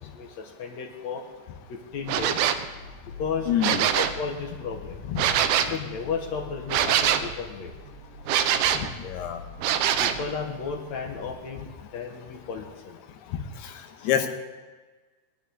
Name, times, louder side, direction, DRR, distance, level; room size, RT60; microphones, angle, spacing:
voice 1, 0.6-1.2 1.7-2.5 3.2-5.0 5.5-7.7 10.0-13.0 14.1-14.3, left 5 dB, 65° left, 2 dB, 1.8 m, -34 dB
sound 1, 1.9-11.3, left 3 dB, 70° right, 5.0 m, -45 dB
sound 2, 2.1-2.7 3.5-4.2 5.2-5.8 6.7-7.3 8.3-8.9 9.6-10.3, right 9 dB, 85° right, 2.6 m, -23 dB
voice 2, 3.5-3.9 5.1-5.2 8.7-9.4 13.6-13.7 14.0-14.3, left 10 dB, 90° left, 5 dB, 3.1 m, -26 dB
21.5 x 11.5 x 3.5 m, 1.3 s
omnidirectional pair, 4.5 m